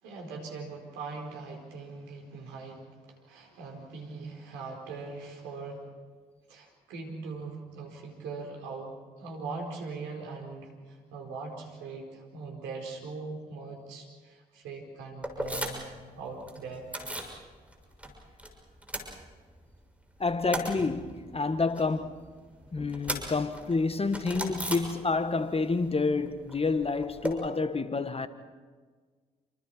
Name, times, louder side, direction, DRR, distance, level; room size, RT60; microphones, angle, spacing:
voice 1, 0.0-5.9 6.5-15.9 16.2-16.9, right 4 dB, 75° right, 4.5 m, -41 dB
sound 1, 15.2-16.0 16.3-17.4 17.7-18.5 18.7-19.8 20.1-25.5 25.7-27.3, right 1 dB, 5° right, 6.4 m, -38 dB
voice 2, 20.2-22.3 22.7-28.3, left 3 dB, 30° left, 1.7 m, -29 dB
29.0 x 26.0 x 4.6 m
hypercardioid pair, 40°, 19 cm